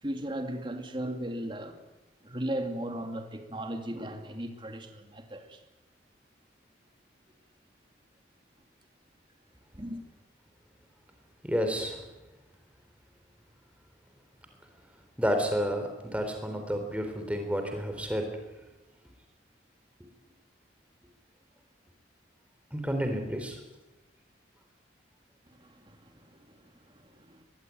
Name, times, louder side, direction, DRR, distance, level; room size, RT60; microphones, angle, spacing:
voice 1, 0.0-1.8 2.2-5.6 9.7-10.0 25.5-27.4, right 1 dB, 25° right, 2.5 m, -37 dB
voice 2, 11.4-12.0 15.2-18.2 22.7-23.6, equal, 5° right, 3.8 m, -30 dB
23.0 x 21.0 x 9.4 m
head